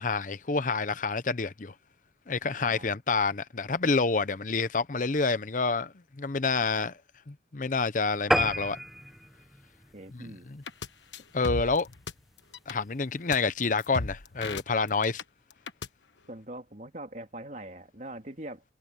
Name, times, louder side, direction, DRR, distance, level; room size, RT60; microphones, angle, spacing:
voice 1, 0.0-1.7 2.3-6.9 7.3-8.8 10.1-10.6 11.3-11.9 12.7-15.2, left 4 dB, 45° left, 0.7 m, -28 dB
sound 1, 8.3-11.1 11.5-11.7 12.2-12.3 12.6-12.7 12.9-13.0, equal, ahead, 0.8 m, -31 dB
voice 2, 9.9-10.5 16.3-18.6, right 1 dB, 45° right, 3.2 m, -42 dB
sound 2, 10.7-10.9 11.1-12.1 12.4-12.7 13.3-13.4 13.6-15.2 15.5-15.9, left 3 dB, 85° left, 1.3 m, -36 dB
head